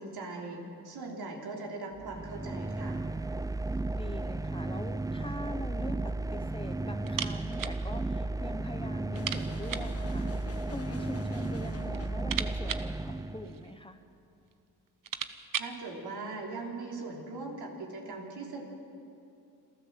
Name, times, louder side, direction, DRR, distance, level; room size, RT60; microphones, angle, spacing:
voice 1, 0.0-3.0 15.6-18.6, right 3 dB, 70° right, -1 dB, 3.6 m, -40 dB
sound 1, 2.0-13.8, right 2 dB, 10° right, 0.4 m, -34 dB
voice 2, 3.9-10.3 10.7-14.0, left 1 dB, 15° left, 8 dB, 1.2 m, -43 dB
sound 2, 7.0-7.8 8.1-8.2 8.5-8.6 9.1-10.0 10.9-11.5 11.8-13.8 14.5-14.6 14.9-15.8, right 8 dB, 55° right, 1.0 m, -38 dB
sound 3, 9.1-12.3, left 5 dB, 35° left, 1.1 m, -47 dB
27.5 x 13.5 x 7.7 m, 2.6 s
cardioid pair, 75°, 39 cm